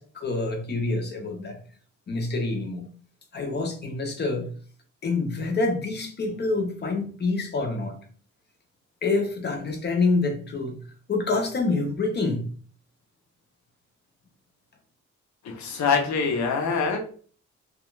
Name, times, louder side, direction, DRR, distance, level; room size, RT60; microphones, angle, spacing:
voice 1, 0.0-1.6 2.1-2.9 3.3-4.5 5.0-8.0 9.0-10.8 11.1-12.5, left 3 dB, 35° left, 0.6 m, -27 dB
voice 2, 15.4-17.0, left 5 dB, 75° left, 0.7 m, -24 dB
2.4 x 2.3 x 3.0 m
wide cardioid pair, 135°, 29 cm